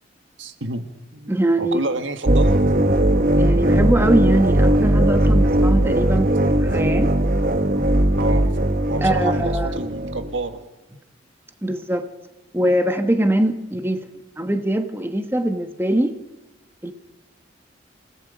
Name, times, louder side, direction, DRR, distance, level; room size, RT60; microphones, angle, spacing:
voice 1, 0.4-0.8 1.1-2.6 8.1-8.6 8.9-10.6, right 2 dB, 75° right, 8 dB, 1.7 m, -29 dB
voice 2, 1.3-1.8 3.4-7.1 9.0-9.8 11.6-12.0 12.5-14.0 14.4-16.1 16.8-16.9, right 1 dB, 10° right, 7 dB, 1.2 m, -22 dB
sound 1, 2.2-10.3, right 1 dB, 45° right, 1.0 m, -18 dB
28.0 x 18.0 x 5.1 m, 1.1 s
head